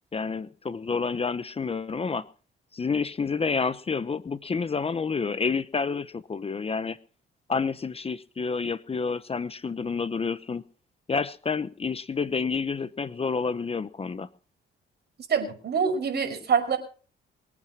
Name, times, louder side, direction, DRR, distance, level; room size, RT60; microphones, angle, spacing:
voice 1, 0.1-2.3 2.7-7.0 7.5-10.6 11.1-14.3, left 5 dB, 30° left, 14 dB, 0.9 m, -29 dB
voice 2, 15.3-16.8, right 6 dB, 55° right, 6 dB, 5.5 m, -25 dB
23.0 x 8.7 x 6.0 m, 0.39 s
cardioid pair, 90°, 20 cm